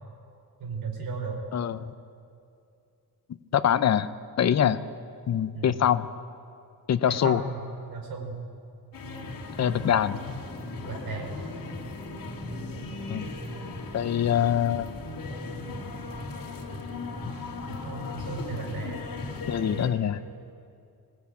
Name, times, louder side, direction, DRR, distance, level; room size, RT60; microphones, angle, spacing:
voice 1, 0.6-1.4 5.5-5.8 7.1-7.6 7.9-8.4 10.8-11.4 17.7-19.0, right 4 dB, 75° right, 2 dB, 3.7 m, -35 dB
voice 2, 1.5-1.9 3.5-4.1 4.4-4.8 5.3-6.1 6.9-7.4 9.6-10.2 13.1-13.3 13.9-14.9 19.5-20.2, left 9 dB, 45° left, 12 dB, 0.7 m, -24 dB
sound 1, 8.9-19.9, left 2 dB, 65° left, 2.6 m, -37 dB
20.5 x 17.5 x 8.4 m, 2.5 s
wide cardioid pair, 180°, 36 cm